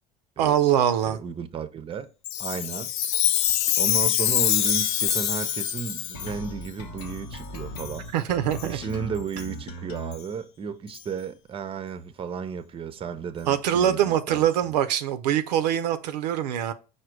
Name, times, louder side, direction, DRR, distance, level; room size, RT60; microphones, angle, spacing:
voice 1, 0.4-1.2 8.1-8.8 13.5-16.7, right 10 dB, 90° right, 0.4 m, -23 dB
voice 2, 1.0-2.1 2.4-2.9 3.8-8.1 8.6-14.8, right 6 dB, 25° right, 0.5 m, -34 dB
Chime, 2.2-6.3 7.0-7.1 7.8-8.0 8.5-8.7 9.4-9.5 10.1-10.2 10.9-11.0, left 11 dB, 65° left, 0.5 m, -25 dB
Doorbell, 4.5-7.1, right 3 dB, ahead, 1.0 m, -41 dB
sound 1, 6.1-10.1, left 1 dB, 85° left, 0.9 m, -38 dB
4.9 x 2.2 x 4.4 m
hypercardioid pair, 80°, 21 cm